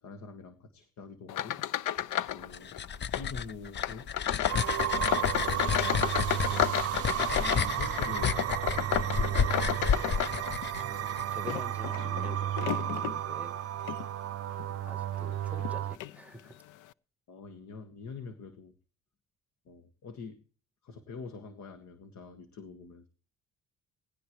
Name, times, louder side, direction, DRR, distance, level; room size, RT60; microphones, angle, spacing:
voice 1, 0.0-1.6 2.3-2.8 3.1-4.1 5.3-7.1 7.4-8.4 9.1-9.8 17.3-18.7 19.7-20.4 20.8-23.1, left 4 dB, 65° left, 1.8 m, -45 dB
sound 1, 1.3-2.5 2.7-3.3 3.8-10.8 11.4-13.2 13.8-14.0 14.6-14.7 15.6-15.7 16.0-16.2, left 12 dB, 85° left, 0.6 m, -32 dB
sound 2, 2.3-11.2, left 7 dB, 35° left, 0.6 m, -32 dB
sound 3, 4.5-16.0, right 12 dB, 50° right, 0.6 m, -33 dB
voice 2, 10.8-13.6 14.9-16.5, right 1 dB, 5° right, 1.3 m, -47 dB
19.0 x 16.0 x 3.2 m
cardioid pair, 90°, 30 cm